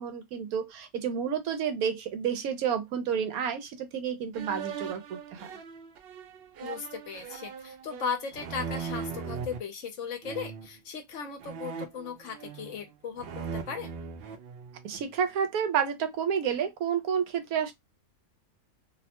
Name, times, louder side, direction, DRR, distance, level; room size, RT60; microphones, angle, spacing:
voice 1, 0.0-5.5 14.8-17.7, right 7 dB, 85° right, 1.1 m, -30 dB
sound 1, 4.3-9.6 10.2-10.7 11.4-12.9 13.2-15.1, right 6 dB, 65° right, 0.6 m, -39 dB
voice 2, 6.6-13.9, left 6 dB, 65° left, 0.9 m, -37 dB
2.7 x 2.1 x 2.8 m
omnidirectional pair, 1.5 m